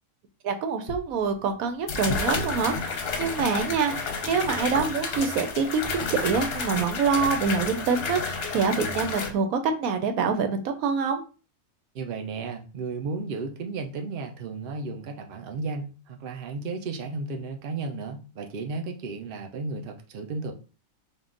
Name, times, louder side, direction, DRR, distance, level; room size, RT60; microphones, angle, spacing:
voice 1, 0.4-11.2, right 5 dB, 90° right, 1.1 m, -26 dB
sound 1, 0.9-1.0 1.9-9.3, left 4 dB, 55° left, 0.8 m, -30 dB
voice 2, 11.9-20.5, right 3 dB, 50° right, 0.7 m, -34 dB
3.7 x 2.4 x 3.7 m
omnidirectional pair, 1.4 m